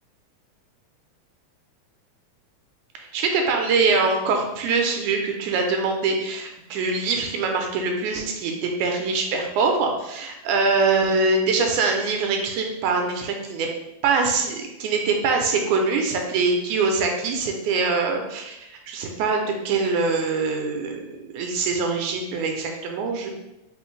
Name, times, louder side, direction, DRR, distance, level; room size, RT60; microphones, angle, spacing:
voice 1, 3.0-13.7 14.0-18.6 18.9-21.0 21.3-23.3, right 4 dB, 85° right, 2 dB, 2.1 m, -23 dB
4.2 x 3.9 x 3.1 m, 0.93 s
omnidirectional pair, 3.5 m